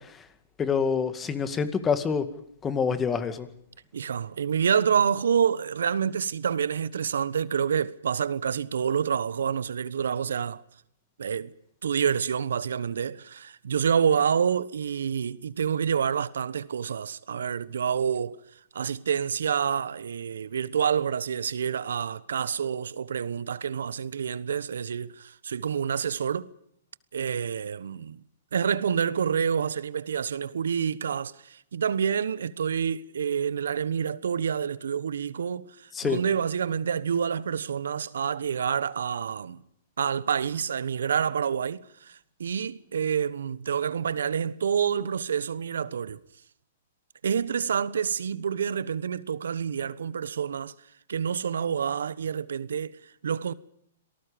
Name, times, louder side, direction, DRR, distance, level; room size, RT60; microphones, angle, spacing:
voice 1, 0.6-2.3 2.6-3.5 35.9-36.2, left 6 dB, 15° left, 2.1 m, -26 dB
voice 2, 3.9-10.6 11.2-11.5 11.8-18.4 18.7-26.5 27.1-28.2 28.5-39.6 40.0-46.2 47.2-50.7 51.1-53.5, right 7 dB, 75° right, 1.1 m, -28 dB
27.5 x 19.0 x 5.2 m
hypercardioid pair, 130°, 0 cm